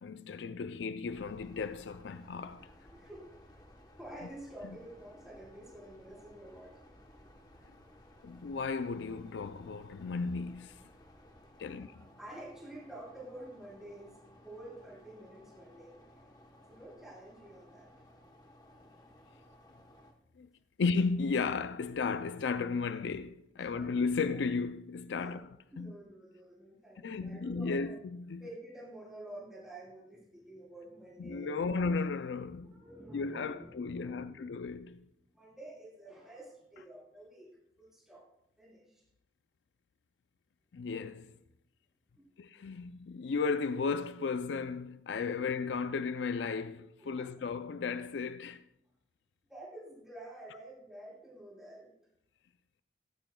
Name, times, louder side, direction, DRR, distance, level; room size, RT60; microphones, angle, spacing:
voice 1, 0.0-2.7 8.2-10.7 11.6-11.9 20.4-20.5 20.8-25.4 25.8-25.9 27.0-28.4 31.2-32.7 33.1-35.1 40.7-41.4 42.4-48.6, left 4 dB, 80° left, 0.4 m, -34 dB
sound 1, 1.1-20.1, left 1 dB, 20° left, 1.0 m, -58 dB
voice 2, 2.9-3.6 4.0-6.8 11.6-16.0 16.7-17.9 23.6-23.9 25.2-25.4 25.7-28.0 28.4-31.8 32.6-34.4 35.3-37.5 37.8-38.2 38.6-39.0 42.1-42.2 47.0-47.3 49.5-51.9, right 1 dB, 5° right, 4.3 m, -49 dB
15.0 x 13.5 x 2.3 m
head